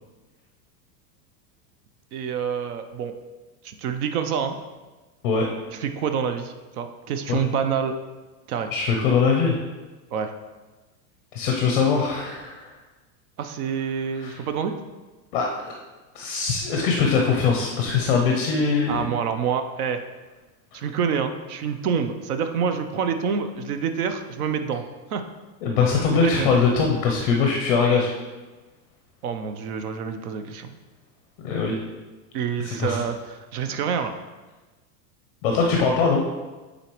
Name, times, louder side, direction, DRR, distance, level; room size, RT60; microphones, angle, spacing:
voice 1, 2.1-3.1 3.6-4.6 5.8-7.9 8.5-8.7 10.1-10.3 13.4-14.7 18.9-20.0 20.7-24.8 25.1-25.2 26.1-26.6 29.2-30.8 32.3-34.1, right 7 dB, 65° right, 8 dB, 0.6 m, -27 dB
voice 2, 8.7-9.5 11.3-12.7 14.2-14.4 15.3-15.5 16.1-19.1 25.6-28.1 31.4-31.7 32.6-33.0 35.4-36.2, left 5 dB, 35° left, 1 dB, 0.5 m, -22 dB
8.9 x 4.0 x 3.0 m, 1.2 s
supercardioid pair, 170°, 50 cm